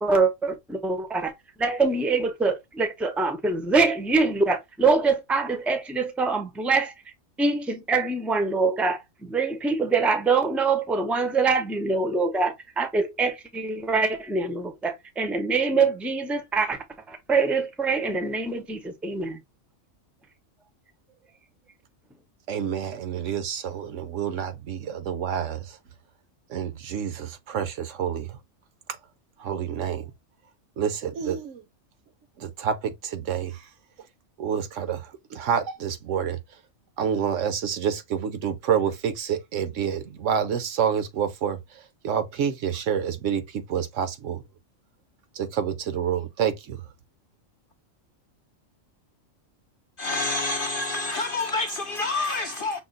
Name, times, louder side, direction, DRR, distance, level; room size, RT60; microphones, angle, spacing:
voice 1, 0.0-1.3 1.6-6.9 7.4-16.8 17.1-19.4, right 4 dB, ahead, 0.4 m, -24 dB
voice 2, 22.5-25.8 26.5-28.4 28.9-29.0 29.4-30.1 30.8-31.6 32.4-33.7 34.4-36.6 37.0-44.4 45.3-46.9, right 8 dB, 70° right, 1.1 m, -28 dB
voice 3, 50.0-52.8, left 2 dB, 65° left, 0.5 m, -27 dB
5.9 x 2.0 x 3.8 m
omnidirectional pair, 1.4 m